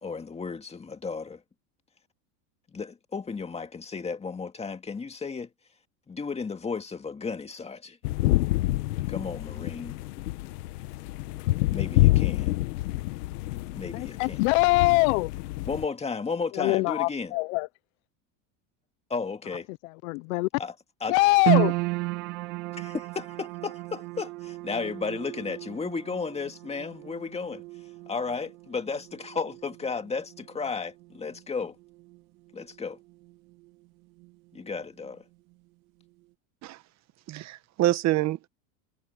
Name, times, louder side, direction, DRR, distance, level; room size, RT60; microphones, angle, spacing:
voice 1, 0.0-1.4 2.7-5.5 6.1-8.0 9.1-10.0 11.7-12.6 13.6-14.4 15.6-17.4 19.1-19.7 20.6-21.2 22.8-27.6 28.1-31.8 32.5-33.0 34.5-35.2, left 5 dB, 15° left, 2.0 m, -34 dB
sound 1, 8.0-15.9, left 17 dB, 90° left, 1.3 m, -27 dB
voice 2, 13.9-15.3 16.6-17.7 20.0-20.5 21.1-21.7, left 24 dB, 65° left, 0.7 m, -23 dB
sound 2, 21.5-33.9 34.1-35.1 35.5-35.6, right 24 dB, 65° right, 1.5 m, -34 dB
voice 3, 37.3-38.5, right 15 dB, 35° right, 1.0 m, -26 dB
supercardioid pair, 140°, 45 cm